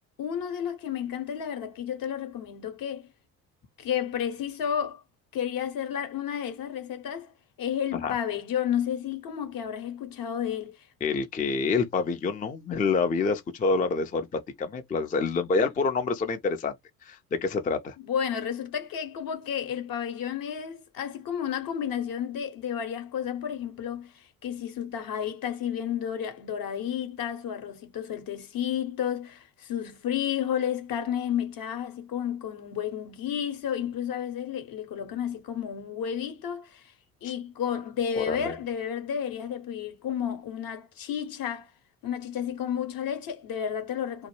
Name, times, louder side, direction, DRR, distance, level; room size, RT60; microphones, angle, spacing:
voice 1, 0.2-3.1 3.8-5.0 5.3-10.9 18.0-36.9 37.2-41.7 42.0-44.3, left 9 dB, 50° left, 0.9 m, -32 dB
voice 2, 11.0-16.8 17.0-18.0 37.2-37.3 38.1-38.6, left 4 dB, 20° left, 0.5 m, -27 dB
2.1 x 2.0 x 3.0 m
hypercardioid pair, 55°, 43 cm